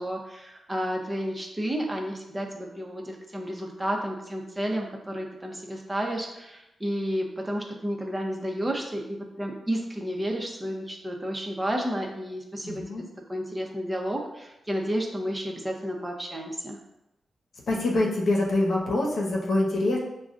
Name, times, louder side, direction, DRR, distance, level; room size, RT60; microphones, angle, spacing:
voice 1, 0.0-16.8, equal, 20° right, 0 dB, 0.8 m, -31 dB
voice 2, 12.6-13.0 17.7-20.0, left 2 dB, 70° left, -2 dB, 0.9 m, -25 dB
5.9 x 2.3 x 2.5 m, 0.89 s
cardioid pair, 50°, 0 cm